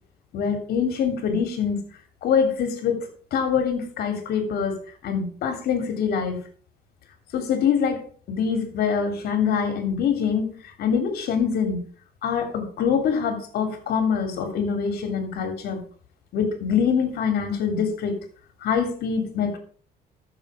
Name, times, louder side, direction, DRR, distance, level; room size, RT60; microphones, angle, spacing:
voice 1, 0.3-1.8 2.2-6.4 7.3-11.8 12.2-15.8 16.3-18.2 18.6-19.6, left 6 dB, 70° left, 3.2 m, -24 dB
13.5 x 6.9 x 5.0 m
cardioid pair, 110°, 17 cm